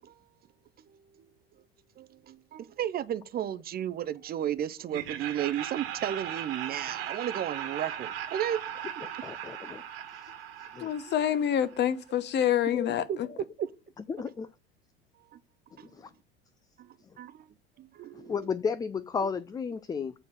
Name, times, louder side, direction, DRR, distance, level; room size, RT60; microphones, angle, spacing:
voice 1, 2.0-8.6 13.1-13.2 13.6-13.7 15.3-15.4 15.8-15.9 16.8-17.5 17.8-18.5, right 10 dB, 30° right, 0.6 m, -34 dB
Laughter, 4.9-11.8, right 10 dB, 65° right, 1.7 m, -38 dB
voice 2, 9.0-9.8 10.7-10.9 12.7-13.0 14.1-14.5 16.0-16.1 18.2-20.1, left 6 dB, 15° left, 0.4 m, -33 dB
voice 3, 10.8-13.3, left 10 dB, 35° left, 0.9 m, -27 dB
8.8 x 4.0 x 6.1 m
figure-of-eight pair, 75°, 30 cm